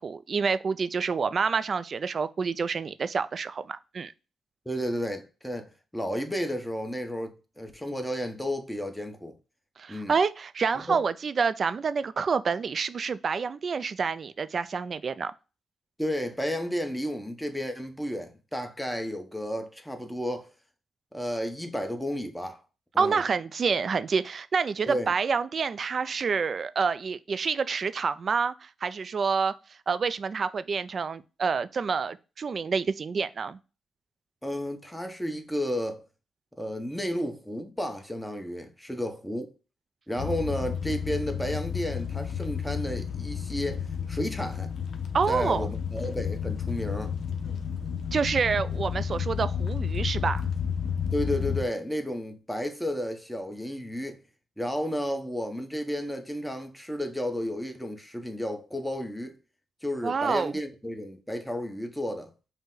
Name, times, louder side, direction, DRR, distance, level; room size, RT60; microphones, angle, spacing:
voice 1, 0.0-4.1 9.8-15.3 23.0-33.6 45.1-45.7 48.1-50.5 60.0-60.5, right 5 dB, 55° right, 0.3 m, -28 dB
voice 2, 4.7-9.3 9.9-10.1 10.9-11.0 16.0-20.5 21.1-22.6 22.9-23.2 24.9-25.1 34.4-36.0 36.6-39.5 40.1-44.7 45.3-47.1 51.1-54.2 54.6-59.4 59.8-62.3, equal, 5° left, 0.9 m, -32 dB
sound 1, 40.2-51.6, left 7 dB, 70° left, 0.5 m, -31 dB
5.3 x 2.1 x 3.7 m
cardioid pair, 65°, 0 cm